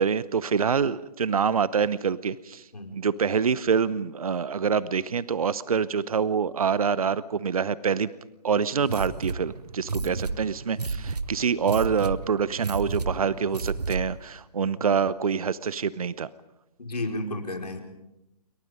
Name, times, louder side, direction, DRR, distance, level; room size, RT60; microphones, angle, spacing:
voice 1, 0.0-2.7 2.9-8.1 8.4-16.3, right 6 dB, 60° right, 18 dB, 0.9 m, -26 dB
sound 1, 8.8-14.3, right 4 dB, 75° right, 1.2 m, -32 dB
voice 2, 16.8-17.8, left 1 dB, 75° left, 3 dB, 5.3 m, -33 dB
28.5 x 23.5 x 5.2 m, 0.90 s
figure-of-eight pair, 140°, 20 cm